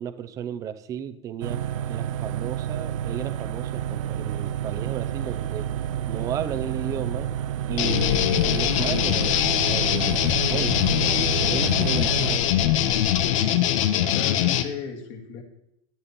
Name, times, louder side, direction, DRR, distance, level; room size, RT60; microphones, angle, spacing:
voice 1, 0.0-5.7 6.1-7.3 7.7-12.5, right 9 dB, 20° right, 11 dB, 0.6 m, -34 dB
sound 1, 1.4-12.4, right 10 dB, 90° right, 0.8 m, -30 dB
sound 2, 7.7-13.3, left 12 dB, 60° left, 0.6 m, -34 dB
sound 3, 7.8-14.6, left 11 dB, 80° left, 1.4 m, -22 dB
voice 2, 13.3-13.7 14.0-15.4, left 6 dB, 45° left, 0 dB, 2.2 m, -36 dB
14.0 x 12.5 x 4.3 m, 0.78 s
supercardioid pair, 175°, 16 cm